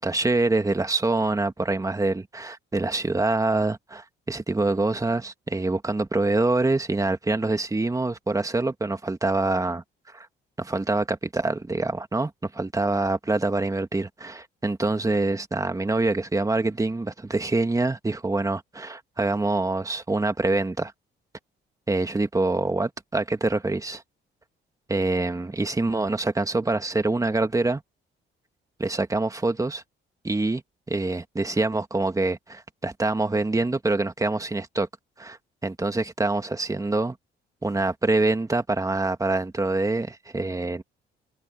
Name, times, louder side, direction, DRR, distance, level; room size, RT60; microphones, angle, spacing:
voice 1, 0.0-9.8 10.1-10.3 10.6-20.9 21.9-24.0 24.9-27.8 28.8-29.8 30.2-30.6 30.9-34.9 35.2-35.4 35.6-37.2 37.6-40.8, right 2 dB, 15° right, 2.0 m, -25 dB
cardioid pair, 90°, 20 cm